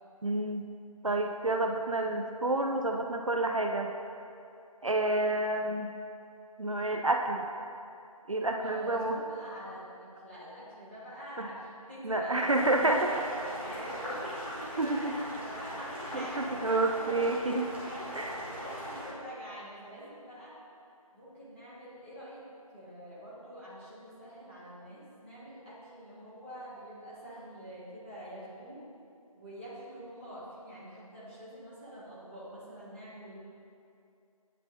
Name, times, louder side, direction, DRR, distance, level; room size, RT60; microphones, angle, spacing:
voice 1, 0.2-0.7 1.0-3.9 4.8-5.9 6.6-7.5 8.3-9.2 11.4-11.5 12.0-13.0 14.8-15.1 16.1-17.7 18.1-18.4, right 2 dB, 60° right, 3 dB, 0.4 m, -29 dB
voice 2, 8.6-13.0 13.6-17.3 18.4-20.6 21.1-22.4 22.7-28.8 29.3-33.4, equal, 20° left, -12 dB, 1.5 m, -45 dB
Boiling, 12.3-19.1, equal, 20° right, 1.2 m, -40 dB
9.9 x 4.2 x 2.6 m, 2.6 s
figure-of-eight pair, 170°, 19 cm